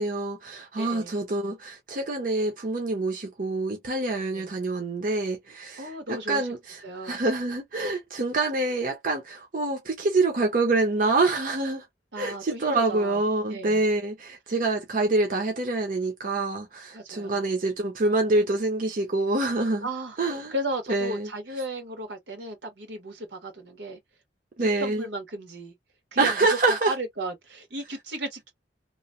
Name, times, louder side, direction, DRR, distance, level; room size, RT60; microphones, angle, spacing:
voice 1, 0.0-11.8 12.2-19.9 20.2-20.5 20.9-21.3 24.6-25.0 26.2-26.9, right 2 dB, 50° right, 0.7 m, -26 dB
voice 2, 0.8-1.2 4.3-4.6 5.8-6.5 6.8-7.2 12.1-13.2 13.5-13.8 16.9-17.5 19.8-20.2 20.5-24.0 24.6-25.7 26.1-26.5 26.9-28.5, right 1 dB, 85° right, 1.4 m, -35 dB
3.0 x 2.1 x 2.5 m
head